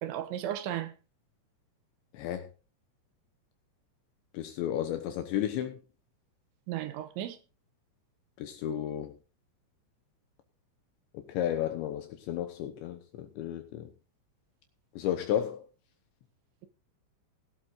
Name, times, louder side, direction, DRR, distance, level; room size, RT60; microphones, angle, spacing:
voice 1, 0.0-0.9 6.7-7.4, right 11 dB, 75° right, 3.2 m, -34 dB
voice 2, 2.1-2.5 4.3-5.8 8.4-9.2 11.1-13.9 15.0-15.6, left 11 dB, 75° left, 3.0 m, -33 dB
19.0 x 12.5 x 2.5 m
omnidirectional pair, 5.8 m